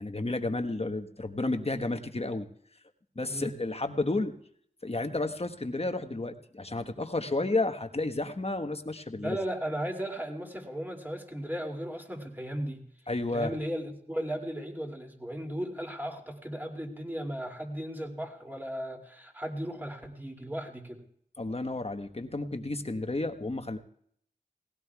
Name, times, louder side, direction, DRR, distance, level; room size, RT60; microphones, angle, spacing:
voice 1, 0.0-2.5 3.1-4.3 4.8-9.4 13.1-13.5 21.4-23.8, left 2 dB, 40° left, 7 dB, 1.2 m, -31 dB
voice 2, 9.2-12.8 13.3-21.0, equal, 10° right, 1 dB, 2.5 m, -36 dB
18.5 x 16.5 x 2.3 m, 0.65 s
wide cardioid pair, 45°, 17 cm